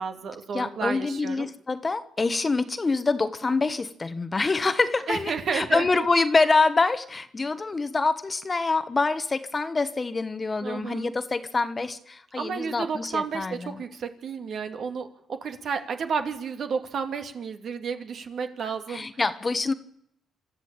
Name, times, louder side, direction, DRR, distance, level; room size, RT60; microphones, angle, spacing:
voice 1, 0.0-1.5 5.1-5.9 10.6-11.1 12.4-19.1, right 5 dB, 60° right, 6 dB, 2.5 m, -31 dB
voice 2, 0.5-13.8 18.9-19.7, left 3 dB, 25° left, 12 dB, 1.3 m, -26 dB
26.5 x 13.0 x 8.8 m, 0.75 s
cardioid pair, 90°, 0 cm